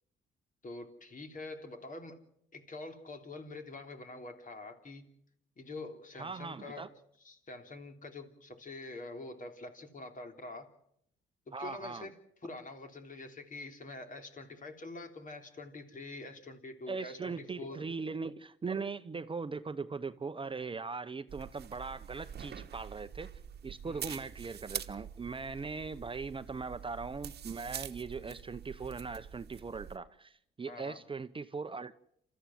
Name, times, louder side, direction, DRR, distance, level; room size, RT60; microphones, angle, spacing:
voice 1, 0.6-2.2 2.5-5.0 5.6-6.9 7.2-10.7 11.5-17.9 23.8-24.2 30.7-31.0, left 2 dB, 40° left, 3.4 m, -46 dB
voice 2, 6.2-6.9 11.5-12.1 16.9-23.3 23.6-31.9, right 4 dB, 25° right, 0.8 m, -40 dB
sound 1, 21.3-30.0, right 9 dB, 55° right, 1.1 m, -45 dB
28.5 x 14.0 x 7.7 m
cardioid pair, 90°, 20 cm